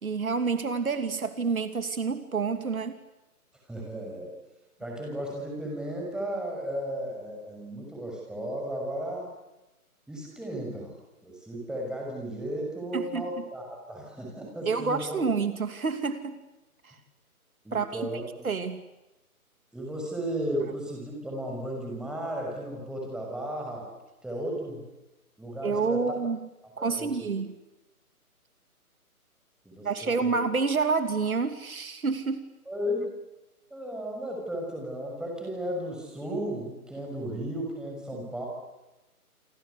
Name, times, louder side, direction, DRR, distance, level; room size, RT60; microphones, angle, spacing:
voice 1, 0.0-3.0 12.9-13.4 14.7-16.4 16.8-17.0 17.7-18.1 18.4-18.8 25.6-26.5 26.8-27.6 29.8-32.4, right 4 dB, 65° right, 9 dB, 2.8 m, -28 dB
voice 2, 3.7-4.3 4.8-9.3 10.1-10.9 11.2-15.2 17.6-18.5 19.7-23.9 24.2-24.8 25.4-26.0 26.8-27.3 29.6-30.3 32.7-33.1 33.7-38.5, equal, ahead, -1 dB, 6.3 m, -34 dB
28.5 x 25.0 x 8.4 m, 1.0 s
figure-of-eight pair, 150°, 45 cm